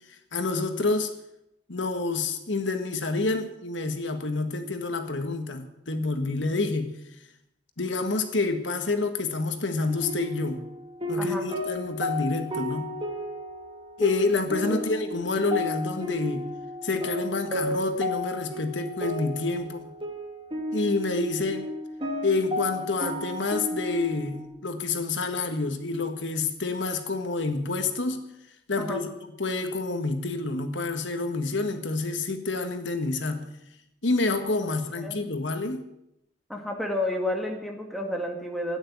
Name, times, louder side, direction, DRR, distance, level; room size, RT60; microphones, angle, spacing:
voice 1, 0.3-1.1 1.7-6.9 7.8-10.6 11.1-12.9 14.0-16.5 16.8-19.9 20.7-21.7 22.2-28.2 28.7-29.1 29.4-33.5 34.0-35.8, left 3 dB, 80° left, 7 dB, 1.6 m, -28 dB
sound 1, 9.8-24.5, left 1 dB, 30° right, 2.4 m, -33 dB
voice 2, 11.2-11.5 14.7-15.0 28.8-29.0 34.6-35.3 36.5-38.8, left 1 dB, ahead, 2 dB, 2.0 m, -31 dB
13.5 x 9.6 x 9.4 m, 0.82 s
head